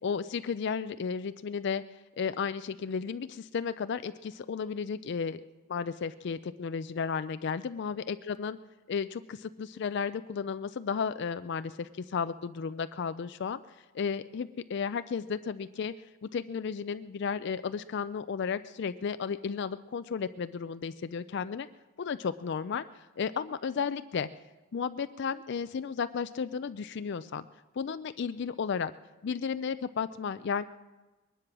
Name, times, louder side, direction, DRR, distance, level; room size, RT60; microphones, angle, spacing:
voice 1, 0.0-5.4 5.7-8.6 8.9-13.6 13.9-15.9 16.2-21.7 22.0-24.3 24.7-27.5 27.8-28.9 29.2-30.6, left 6 dB, 55° left, 12 dB, 0.4 m, -33 dB
21.0 x 11.0 x 6.1 m, 1.2 s
head